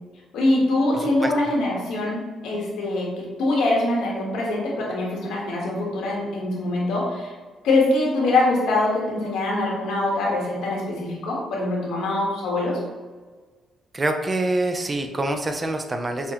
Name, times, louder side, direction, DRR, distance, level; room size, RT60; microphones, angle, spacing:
voice 1, 0.3-7.3 7.6-12.8, left 2 dB, 85° left, -3 dB, 1.1 m, -23 dB
voice 2, 13.9-16.3, right 2 dB, 25° right, 5 dB, 0.4 m, -25 dB
5.7 x 2.1 x 2.8 m, 1.4 s
cardioid pair, 90°, 0 cm